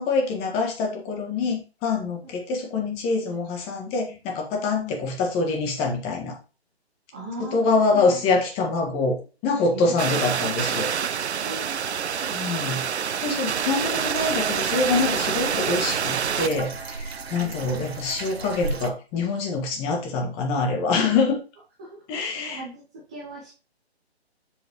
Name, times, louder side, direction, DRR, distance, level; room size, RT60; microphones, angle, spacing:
voice 1, 0.0-6.4 7.4-9.2 9.4-10.9 11.3-11.4 12.3-21.4 22.1-22.6, left 3 dB, 15° left, 2 dB, 1.7 m, -25 dB
voice 2, 7.1-8.2 9.7-10.3 11.3-12.3 17.4-18.0 20.2-20.4 21.8-22.8 23.1-23.5, right 2 dB, 5° right, -5 dB, 0.4 m, -40 dB
sound 1, 10.0-16.5, right 7 dB, 90° right, 0.5 m, -27 dB
sound 2, 13.9-18.9, right 4 dB, 70° right, 1.2 m, -35 dB
7.4 x 6.3 x 3.1 m, 0.34 s
figure-of-eight pair, 145°, 32 cm